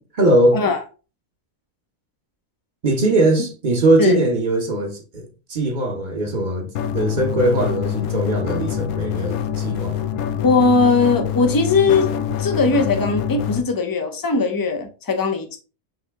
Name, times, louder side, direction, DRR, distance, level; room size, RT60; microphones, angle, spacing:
voice 1, 0.2-0.6 2.8-6.7 6.9-10.0, right 1 dB, 40° right, 0.9 m, -20 dB
sound 1, 6.7-13.6, left 9 dB, 85° left, 1.1 m, -25 dB
voice 2, 10.4-12.1 12.4-15.6, left 4 dB, 30° left, 0.4 m, -19 dB
5.7 x 2.7 x 3.4 m
omnidirectional pair, 1.5 m